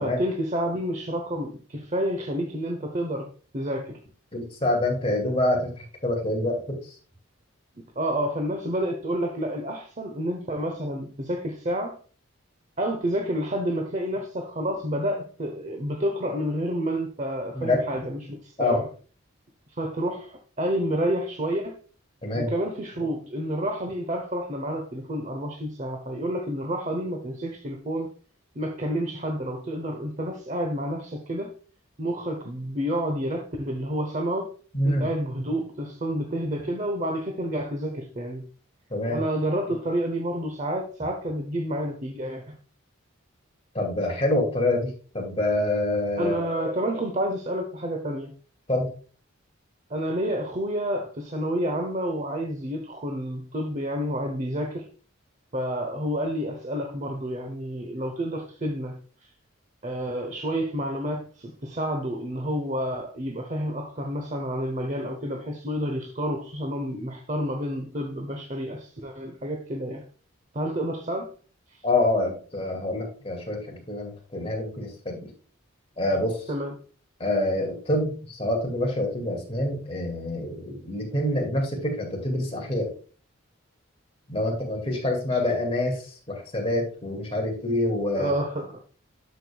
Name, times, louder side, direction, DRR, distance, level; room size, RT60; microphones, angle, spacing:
voice 1, 0.0-4.0 8.0-12.0 12.8-18.9 19.8-21.8 22.3-28.1 28.6-31.5 32.0-34.5 34.8-38.5 39.1-42.6 46.2-48.3 49.9-54.9 55.5-59.3 59.8-70.0 70.5-71.3 71.7-71.8 76.5-76.7 88.1-88.8, equal, 35° right, 0.9 m, -29 dB
voice 2, 4.3-6.8 17.5-17.8 18.6-18.8 22.2-22.5 34.7-35.0 38.9-39.2 43.7-46.3 48.7-48.9 71.8-75.3 76.0-76.4 77.2-82.9 84.3-86.0 86.3-88.3, left 1 dB, 30° left, 2.2 m, -26 dB
12.0 x 5.2 x 2.3 m
head